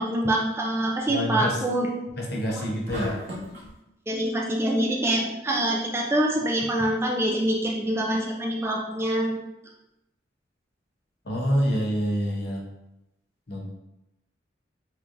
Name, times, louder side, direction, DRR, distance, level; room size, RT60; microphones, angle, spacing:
voice 1, 0.0-1.9 2.5-2.6 4.1-9.4, right 1 dB, 15° right, -1 dB, 0.3 m, -25 dB
voice 2, 1.1-1.6 2.2-3.2 11.2-12.6 13.5-13.7, equal, 55° left, -1 dB, 0.8 m, -27 dB
sound 1, 2.9-3.7, equal, 60° right, 1.1 m, -35 dB
3.6 x 3.1 x 2.5 m, 0.91 s
head